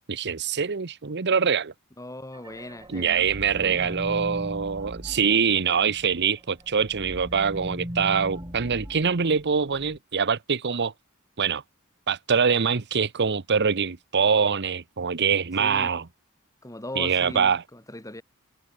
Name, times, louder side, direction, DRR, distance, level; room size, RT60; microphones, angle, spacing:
voice 1, 0.1-1.7 2.9-10.9 11.4-11.6 12.1-16.0 17.0-17.6, right 6 dB, 55° right, 0.9 m, -24 dB
voice 2, 2.0-3.3 3.6-4.0 15.6-15.9 16.6-18.2, left 1 dB, 15° left, 4.2 m, -39 dB
sound 1, 2.3-6.2 6.6-10.0, equal, 20° right, 5.0 m, -39 dB
head